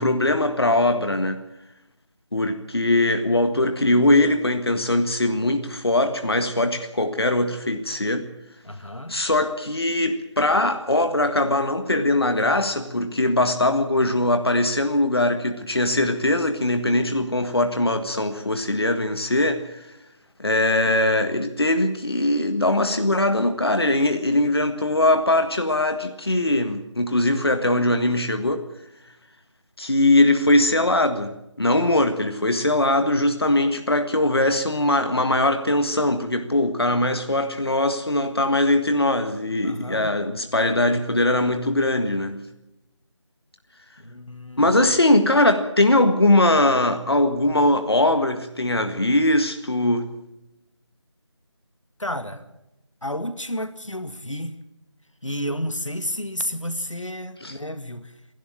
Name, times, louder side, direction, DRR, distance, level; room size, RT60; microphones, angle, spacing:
voice 1, 0.0-1.4 2.3-8.3 9.1-19.7 20.4-28.6 29.8-31.3 31.6-42.4 44.6-50.1 57.4-57.5, left 1 dB, 55° left, 1.7 m, -21 dB
voice 2, 8.6-9.2 39.6-40.2 44.0-44.7 52.0-52.5 53.0-54.6 55.2-58.1, equal, 90° left, 2.0 m, -31 dB
27.0 x 12.0 x 8.7 m
figure-of-eight pair, 165°, 16 cm